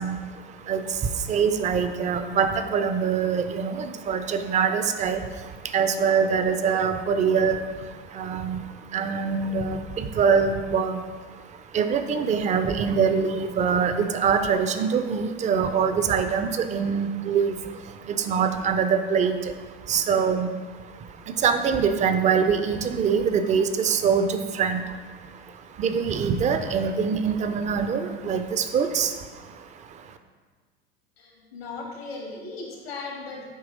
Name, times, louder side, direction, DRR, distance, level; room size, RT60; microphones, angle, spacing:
voice 1, 0.0-30.2, right 6 dB, 25° right, 9 dB, 0.4 m, -25 dB
voice 2, 31.2-33.5, left 3 dB, 75° left, -1 dB, 1.6 m, -37 dB
8.4 x 2.9 x 3.8 m, 1.4 s
hypercardioid pair, 85°, 30 cm